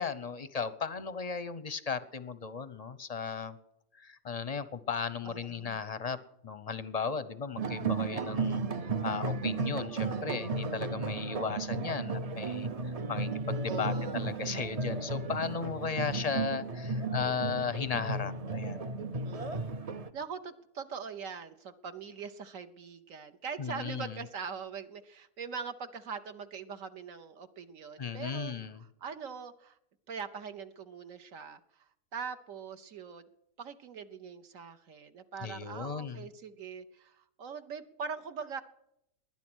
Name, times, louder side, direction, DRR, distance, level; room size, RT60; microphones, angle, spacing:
voice 1, 0.0-3.6 4.0-6.2 6.4-8.6 9.0-12.7 13.1-18.8 23.6-24.2 28.0-28.8 35.4-36.3, left 5 dB, 40° left, 14 dB, 0.6 m, -36 dB
voice 2, 5.2-5.8 13.6-14.3 19.2-19.7 20.1-29.8 30.1-33.3 33.6-38.6, right 6 dB, 60° right, 9 dB, 1.2 m, -42 dB
sound 1, 7.6-20.1, right 3 dB, 40° right, 0.5 m, -34 dB
19.5 x 10.5 x 6.2 m, 0.80 s
omnidirectional pair, 1.6 m